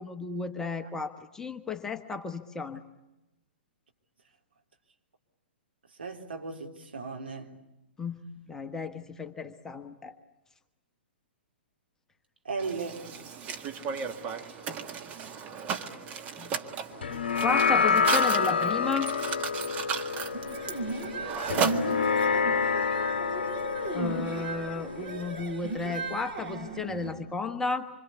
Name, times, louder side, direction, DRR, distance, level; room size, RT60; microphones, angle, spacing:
voice 1, 0.0-2.8 8.0-10.1 14.4-14.5 16.4-16.5 17.4-19.1 23.9-27.9, left 4 dB, 10° left, 7 dB, 1.2 m, -33 dB
voice 2, 6.0-7.5 12.5-13.0, right 4 dB, 70° right, 2 dB, 3.6 m, -36 dB
Mechanisms, 12.6-22.4, right 6 dB, 25° right, 1.7 m, -35 dB
sound 1, 17.0-25.7, left 5 dB, 65° left, 0.9 m, -28 dB
sound 2, 20.3-27.1, right 2 dB, 45° right, 7.7 m, -36 dB
26.5 x 26.0 x 8.4 m, 0.97 s
figure-of-eight pair, 115°, 6 cm